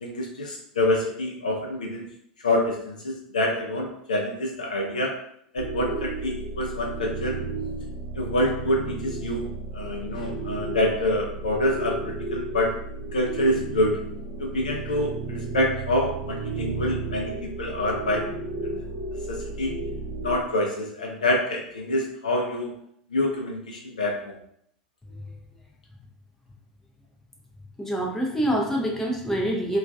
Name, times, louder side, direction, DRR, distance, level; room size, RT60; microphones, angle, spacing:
voice 1, 0.0-2.1 2.4-5.2 5.5-7.4 8.2-9.5 9.7-12.7 13.1-14.0 14.4-18.3 18.6-18.8 19.3-19.7 20.2-22.7 23.1-24.3, left 1 dB, 75° left, 0 dB, 0.4 m, -26 dB
sound 1, 5.6-20.4, right 3 dB, 50° right, 0.6 m, -33 dB
voice 2, 25.0-25.3 27.8-29.8, right 1 dB, 10° left, -2 dB, 0.5 m, -26 dB
2.3 x 2.2 x 2.4 m, 0.69 s
figure-of-eight pair, 85°, 4 cm